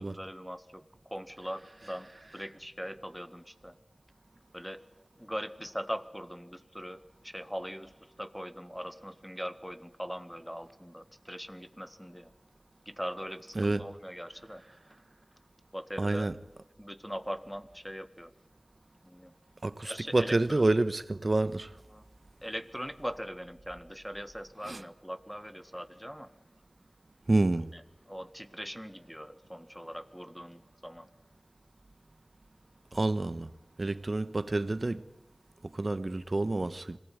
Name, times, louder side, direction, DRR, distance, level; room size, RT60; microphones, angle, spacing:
voice 1, 0.0-3.8 4.5-4.8 5.2-12.3 12.9-14.6 15.7-16.3 16.8-18.3 19.0-19.3 19.8-20.7 21.9-22.1 22.4-26.3 27.7-27.8 28.1-31.1 33.8-34.0, equal, ahead, 1.9 m, -41 dB
voice 2, 13.5-13.9 16.0-16.3 19.6-21.7 24.6-24.8 27.3-27.7 32.9-33.5 33.8-35.0 35.7-37.0, right 2 dB, 60° right, 1.2 m, -28 dB
26.5 x 19.0 x 9.6 m
wide cardioid pair, 50°, 0 cm